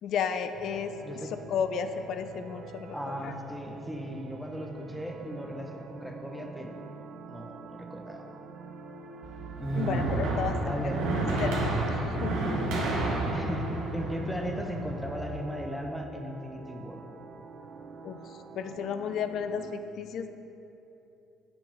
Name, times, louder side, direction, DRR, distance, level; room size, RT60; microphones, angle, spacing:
voice 1, 0.0-0.9 1.5-3.3 9.7-10.5 11.4-12.4 18.0-20.3, left 7 dB, 55° left, 9 dB, 0.5 m, -33 dB
sound 1, 0.5-19.7, right 4 dB, 50° right, 0.7 m, -46 dB
voice 2, 2.9-6.8 7.3-8.3 9.6-10.1 10.6-11.2 13.3-17.0, equal, 5° left, 2 dB, 1.2 m, -36 dB
sound 2, 9.2-15.4, right 2 dB, 65° right, 1.4 m, -30 dB
14.5 x 4.8 x 3.5 m, 2.9 s
hypercardioid pair, 55°, 0 cm